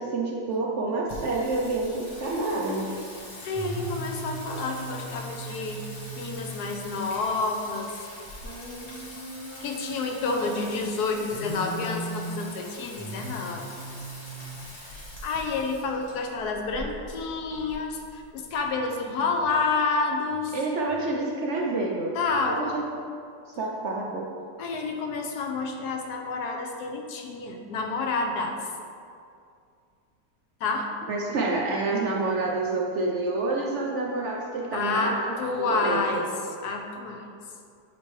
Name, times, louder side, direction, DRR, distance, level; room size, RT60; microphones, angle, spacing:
voice 1, 0.0-2.9 20.5-22.1 22.5-22.8 23.5-24.3 31.1-36.2, right 2 dB, 60° right, -2 dB, 0.8 m, -28 dB
Singing, 1.1-18.7, right 1 dB, 45° left, 1.4 m, -39 dB
voice 2, 3.4-5.8 6.1-7.9 9.6-13.6 15.2-20.5 22.1-22.8 24.6-28.6 30.6-30.9 34.7-36.3 36.6-37.3, left 3 dB, 80° left, 3 dB, 1.2 m, -29 dB
9.4 x 4.3 x 3.1 m, 2.3 s
omnidirectional pair, 1.7 m